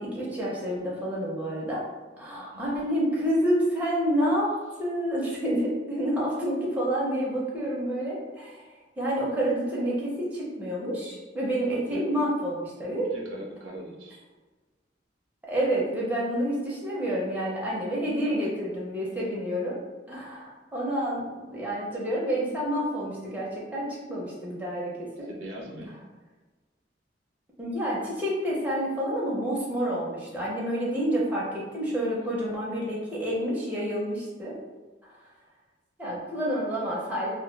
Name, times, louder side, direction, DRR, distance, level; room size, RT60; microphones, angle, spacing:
voice 1, 0.0-1.8 2.2-4.5 4.8-8.6 9.0-13.1 15.5-19.8 20.1-25.3 27.6-34.6 35.0-35.1 36.0-37.3, equal, 10° right, -6 dB, 0.6 m, -29 dB
voice 2, 2.4-2.7 11.7-12.1 12.9-14.2 25.3-26.0, equal, 80° right, -1 dB, 0.6 m, -41 dB
2.2 x 2.1 x 3.1 m, 1.3 s
head